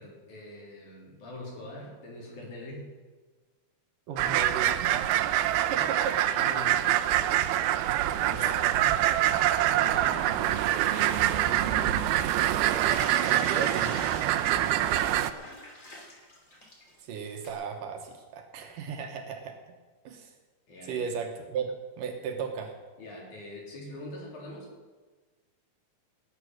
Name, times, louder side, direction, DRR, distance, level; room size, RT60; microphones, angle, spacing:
voice 1, 0.0-2.9 5.4-7.6 8.0-9.0 9.7-10.5 10.9-12.0 14.4-15.3 20.7-21.1 23.0-24.7, left 1 dB, 55° left, -1 dB, 4.7 m, -44 dB
voice 2, 4.1-5.0 5.7-6.2 13.2-14.0 17.0-19.6 20.0-20.3 20.8-22.8, right 6 dB, 70° right, 4 dB, 2.6 m, -35 dB
sound 1, 4.2-15.3, right 13 dB, 85° right, 2.5 m, -25 dB
sound 2, 9.9-12.1 12.4-17.5, left 2 dB, 25° left, 2.7 m, -44 dB
18.0 x 9.5 x 6.4 m, 1.3 s
omnidirectional pair, 4.3 m